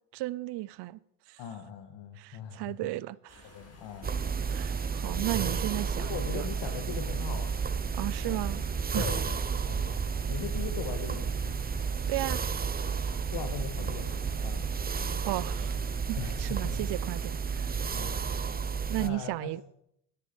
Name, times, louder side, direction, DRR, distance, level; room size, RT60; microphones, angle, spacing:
voice 1, 0.1-1.0 1.3-1.4 2.2-3.5 4.5-6.5 7.9-8.6 8.9-9.1 12.1-12.4 15.2-15.7 16.1-17.7 18.9-19.6, right 18 dB, 65° right, 0.5 m, -34 dB
voice 2, 1.4-2.9 3.4-4.2 5.1-5.3 5.9-7.7 8.2-8.4 8.9-9.4 9.7-10.0 10.3-11.6 13.3-15.2 16.2-16.9 17.9-18.2 19.0-19.5, left 7 dB, 70° left, 1.6 m, -40 dB
sound 1, 3.3-18.4, left 2 dB, 35° left, 3.7 m, -53 dB
sound 2, 4.0-19.1, right 6 dB, 20° right, 0.6 m, -32 dB
10.0 x 10.0 x 5.2 m
cardioid pair, 95°, 45 cm